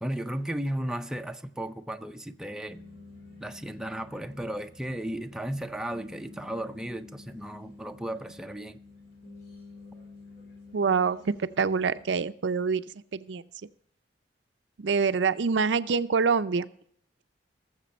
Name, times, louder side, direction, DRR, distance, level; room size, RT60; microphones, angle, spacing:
voice 1, 0.0-2.8 3.4-8.8, right 1 dB, 5° right, 0.5 m, -35 dB
sound 1, 2.7-12.0, left 3 dB, 60° left, 2.9 m, -50 dB
voice 2, 10.7-13.4 14.8-16.7, right 5 dB, 75° right, 0.5 m, -26 dB
19.0 x 7.4 x 4.3 m
head